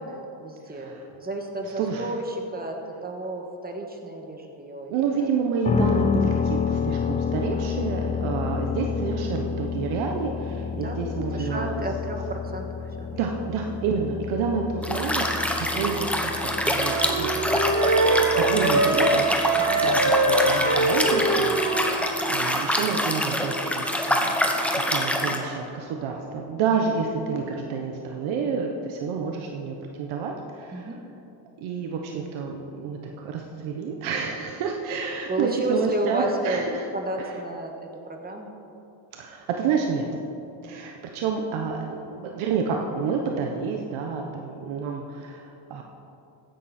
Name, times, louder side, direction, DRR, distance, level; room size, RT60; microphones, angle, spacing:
voice 1, 0.0-0.9 1.2-4.9 10.7-11.0 11.3-12.7 13.0-13.1 19.6-19.9 30.7-31.0 35.3-36.7 36.9-38.5 40.6-40.8, right 2 dB, 20° right, 2 dB, 1.6 m, -31 dB
voice 2, 0.7-1.1 1.8-2.1 4.9-11.7 13.1-18.1 18.4-24.3 24.7-30.9 31.6-33.0 33.2-36.9 37.2-37.3 39.1-40.1 40.6-45.8, right 5 dB, 80° right, 1 dB, 1.2 m, -29 dB
sound 1, 5.6-21.5, left 6 dB, 20° left, 0.3 m, -30 dB
Liquid, 14.8-25.4, left 1 dB, 5° left, 1.1 m, -25 dB
sound 2, 16.7-21.9, right 2 dB, 50° right, 3.0 m, -23 dB
14.5 x 11.0 x 4.4 m, 2.8 s
cardioid pair, 125°, 48 cm